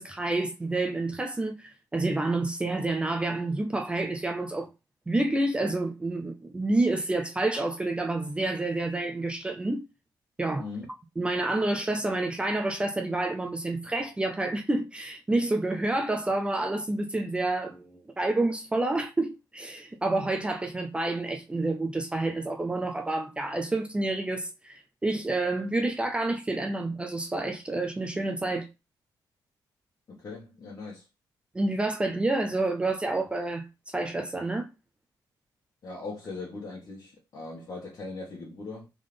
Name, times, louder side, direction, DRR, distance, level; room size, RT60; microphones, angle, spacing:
voice 1, 0.0-4.7 5.1-9.8 10.4-10.7 11.2-28.7 31.5-34.7, right 2 dB, 15° right, 0.4 m, -29 dB
voice 2, 30.1-31.0 35.8-38.9, left 3 dB, 45° left, 1.4 m, -40 dB
3.7 x 3.6 x 3.3 m
cardioid pair, 135°, 8 cm